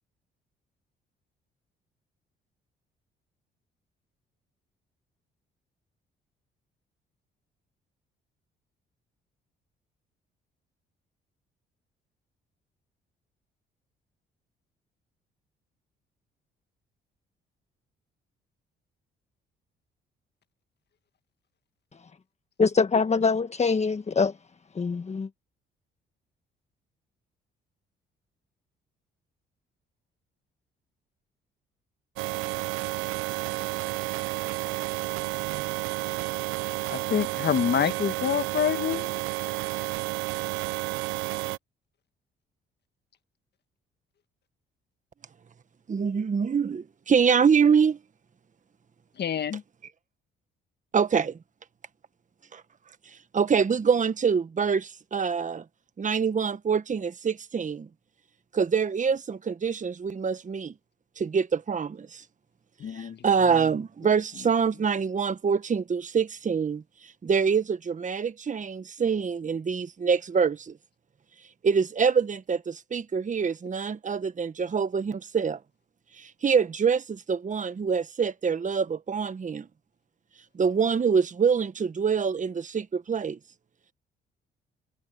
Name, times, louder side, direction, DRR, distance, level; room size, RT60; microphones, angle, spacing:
voice 1, 22.6-24.3 24.7-25.3, left 4 dB, 35° left, 1.3 m, -24 dB
sound 1, 32.2-41.6, right 20 dB, 80° right, 0.8 m, -31 dB
voice 2, 36.9-39.2 49.2-49.6 62.8-63.2, left 8 dB, 55° left, 1.8 m, -27 dB
voice 3, 45.9-48.0 50.9-51.4 52.5-52.6 53.3-55.6 56.0-57.9 58.5-60.7 61.2-62.2 62.9-70.8 71.6-75.6 76.2-79.7 80.6-83.4, right 6 dB, 40° right, 1.5 m, -25 dB
supercardioid pair, 60°, 21 cm